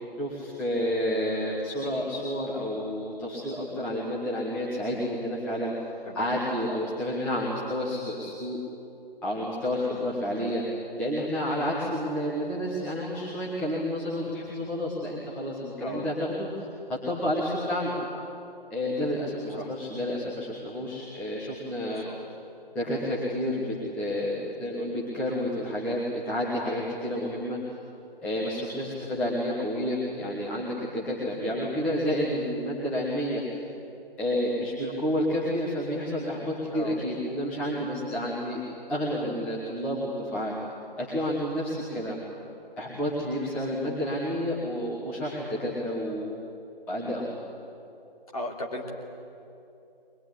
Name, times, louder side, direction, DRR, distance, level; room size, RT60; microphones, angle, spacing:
voice 1, 0.2-8.6 9.2-10.6 11.0-17.9 18.7-22.0 22.7-27.6 28.2-33.4 34.2-38.6 38.9-40.5 41.0-42.2 42.8-46.3 46.9-47.3, equal, 5° left, -8 dB, 1.3 m, -30 dB
voice 2, 6.0-6.4 9.8-10.1 15.8-16.1 18.9-19.3 19.5-19.7 21.8-22.2 23.1-23.3 31.4-31.7 36.7-37.0 41.9-42.1 48.3-48.9, left 1 dB, 35° left, 0 dB, 3.3 m, -39 dB
22.5 x 20.5 x 10.0 m, 2.8 s
figure-of-eight pair, 150°, 30 cm